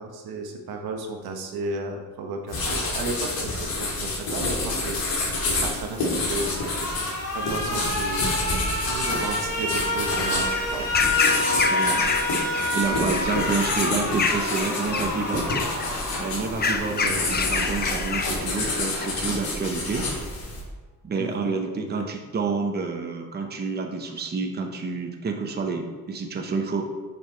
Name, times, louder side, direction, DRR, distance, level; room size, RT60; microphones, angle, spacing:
voice 1, 0.0-5.0 5.6-6.5 7.3-8.3 8.9-11.5 11.9-12.1 16.9-17.2 21.2-22.1, right 3 dB, 90° right, 3 dB, 1.1 m, -34 dB
sound 1, 2.5-20.6, left 2 dB, 75° left, 2.0 m, -29 dB
Alarm, 6.1-17.1, left 1 dB, 55° left, 2.0 m, -29 dB
sound 2, 9.1-19.2, left 4 dB, 25° left, 0.5 m, -29 dB
voice 2, 11.7-12.1 12.7-15.5 16.2-20.1 21.0-26.8, right 4 dB, 25° right, 3 dB, 0.7 m, -29 dB
6.4 x 5.4 x 4.4 m, 1.3 s
cardioid pair, 140°, 36 cm